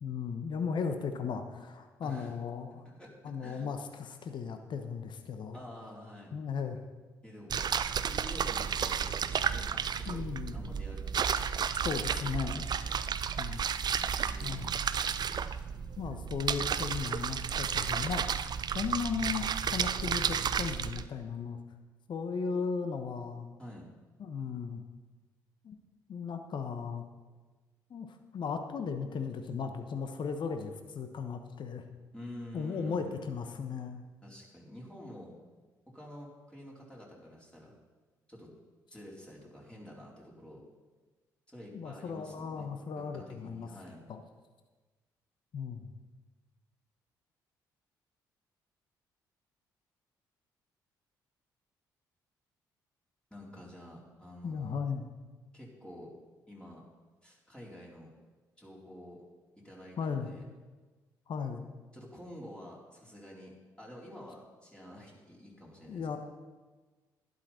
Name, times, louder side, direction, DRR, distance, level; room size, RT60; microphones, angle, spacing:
voice 1, 0.0-2.8 3.2-5.6 6.3-6.8 10.1-10.8 11.8-12.7 13.4-13.6 14.4-14.7 16.0-18.2 18.7-19.4 19.7-21.6 22.1-23.5 24.2-24.8 25.6-25.8 26.1-27.0 27.9-28.1 28.3-31.8 32.5-34.0 41.7-43.7 44.1-44.2 45.5-45.9 54.4-55.1 60.0-60.3 61.3-61.7 65.9-66.2, left 5 dB, 50° left, 7 dB, 1.1 m, -36 dB
voice 2, 2.0-2.4 3.0-3.7 5.5-6.3 7.2-7.6 8.1-10.2 10.5-11.3 14.0-14.7 23.6-23.9 32.1-33.2 34.2-35.3 35.9-37.7 38.3-38.5 38.9-40.6 41.5-42.7 43.0-44.0 53.3-54.8 55.5-56.1 56.5-56.8 57.2-58.1 58.6-59.2 59.6-60.5 61.9-66.2, left 1 dB, 10° left, -4 dB, 4.1 m, -49 dB
sound 1, 7.5-21.0, right 7 dB, 45° right, 0.5 m, -32 dB
11.5 x 11.5 x 4.4 m, 1.3 s
figure-of-eight pair, 45°, 10 cm